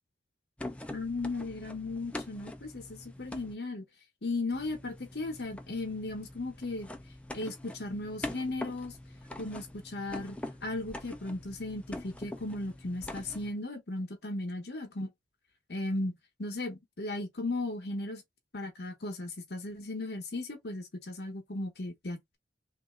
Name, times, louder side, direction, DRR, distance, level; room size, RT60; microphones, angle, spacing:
sound 1, 0.6-3.5 4.5-13.5, left 1 dB, 5° left, 0.4 m, -44 dB
voice 1, 0.9-3.8 4.2-6.9 7.3-8.9 9.4-15.1 15.7-18.2 18.5-22.4, left 2 dB, 65° left, 0.9 m, -36 dB
3.1 x 2.7 x 3.6 m
head